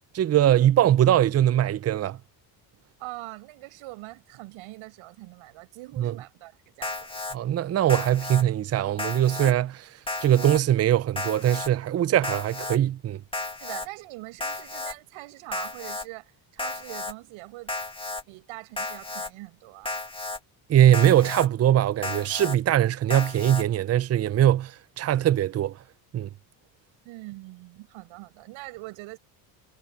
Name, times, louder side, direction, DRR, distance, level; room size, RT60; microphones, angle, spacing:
voice 1, 0.1-2.2 6.0-6.2 7.3-9.9 10.2-13.2 20.7-25.7 26.1-26.3, right 11 dB, 30° right, 0.6 m, -21 dB
voice 2, 3.0-7.2 13.6-17.7 18.3-19.9 27.0-29.2, right 21 dB, 85° right, 6.8 m, -42 dB
Alarm, 6.8-7.4 7.9-8.4 9.0-9.5 10.1-10.6 11.2-11.7 12.2-12.8 13.3-13.9 14.4-14.9 15.5-16.1 16.6-17.1 17.7-18.2 18.8-19.3 19.9-20.4 20.9-21.5 22.0-22.6 23.1-23.6, left 2 dB, 10° left, 2.1 m, -33 dB
cardioid pair, 95°, 47 cm